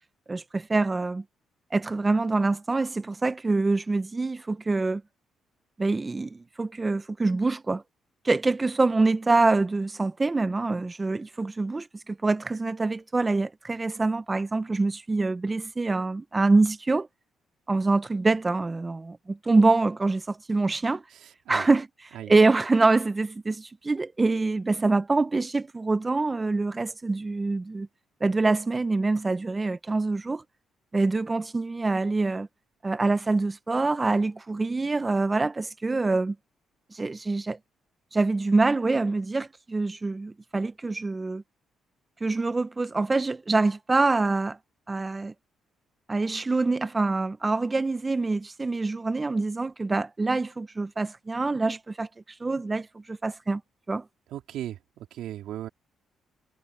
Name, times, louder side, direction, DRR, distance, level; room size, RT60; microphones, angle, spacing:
voice 1, 0.3-1.2 1.7-5.0 5.8-7.8 8.2-17.1 17.7-21.0 21.5-27.9 28.2-30.4 30.9-32.5 32.8-36.3 36.9-37.6 38.1-41.4 42.2-44.6 44.9-45.3 46.1-52.1 52.4-53.6 53.9-54.0, right 3 dB, 20° right, 0.9 m, -25 dB
voice 2, 54.3-55.7, right 12 dB, 80° right, 3.5 m, -36 dB
cardioid pair, 90°, 0 cm